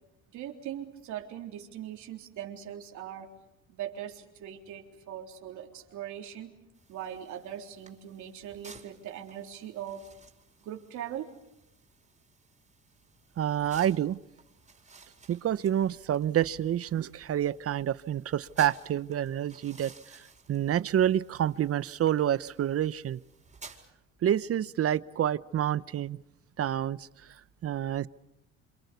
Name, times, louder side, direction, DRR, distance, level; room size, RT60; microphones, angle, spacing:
voice 1, 0.3-3.3 3.7-6.5 6.9-10.0 10.6-11.3, right 10 dB, 75° right, 2 dB, 3.8 m, -40 dB
sound 1, 6.7-23.9, right 4 dB, 25° right, 4.7 m, -55 dB
voice 2, 13.4-14.2 15.3-19.9 20.5-23.2 24.2-26.2 26.6-27.1 27.6-28.1, right 10 dB, 50° right, 17 dB, 0.9 m, -28 dB
27.5 x 26.5 x 6.9 m, 0.86 s
supercardioid pair, 80°, 29 cm